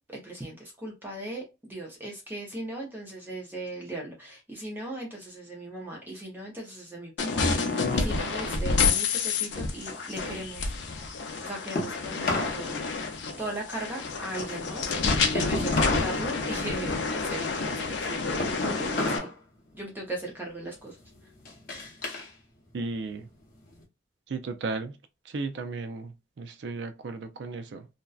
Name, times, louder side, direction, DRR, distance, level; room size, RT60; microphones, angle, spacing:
voice 1, 0.1-10.7 11.4-12.8 13.4-19.3 19.7-21.0, right 1 dB, 10° right, 0.6 m, -38 dB
sound 1, 7.2-19.2, left 4 dB, 75° left, 0.5 m, -29 dB
sound 2, 9.5-12.6 12.9-16.2 16.5-19.4 19.7-20.1 20.7-22.3 22.7-23.8, left 2 dB, 50° left, 0.8 m, -34 dB
voice 2, 22.7-23.3 24.3-25.0 25.2-27.9, right 3 dB, 75° right, 0.4 m, -35 dB
2.6 x 2.1 x 2.3 m
head